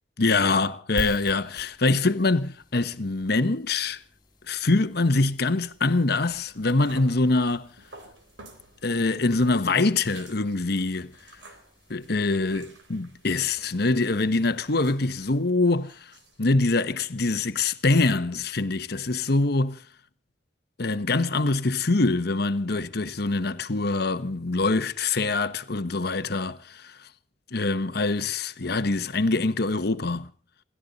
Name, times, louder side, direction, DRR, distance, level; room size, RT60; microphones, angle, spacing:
voice 1, 0.2-4.0 4.5-7.7 8.8-11.1 11.9-16.1 16.4-19.8 20.8-27.1 27.5-30.3, left 3 dB, 60° left, 1.1 m, -24 dB
sound 1, 1.0-15.7, left 1 dB, 25° left, 2.6 m, -47 dB
sound 2, 6.1-16.4, right 2 dB, 80° right, 3.7 m, -51 dB
28.0 x 12.5 x 4.1 m
head